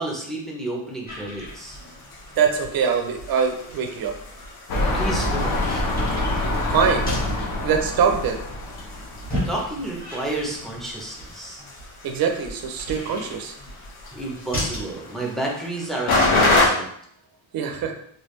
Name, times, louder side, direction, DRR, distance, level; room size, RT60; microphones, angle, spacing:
voice 1, 0.0-1.8 4.9-5.8 9.5-11.6 14.1-16.9, right 2 dB, ahead, -2 dB, 0.5 m, -31 dB
sound 1, 1.1-14.9, equal, 20° left, 1.1 m, -36 dB
sound 2, 1.4-16.7, left 2 dB, 75° left, 0.9 m, -29 dB
voice 2, 2.4-4.1 6.7-7.1 7.6-8.4 12.0-13.5 17.5-17.9, right 6 dB, 50° right, 4 dB, 0.5 m, -23 dB
sound 3, 4.7-9.7 10.3-10.4, left 1 dB, 45° left, 0.6 m, -26 dB
3.3 x 2.3 x 3.0 m, 0.66 s
cardioid pair, 165°, 47 cm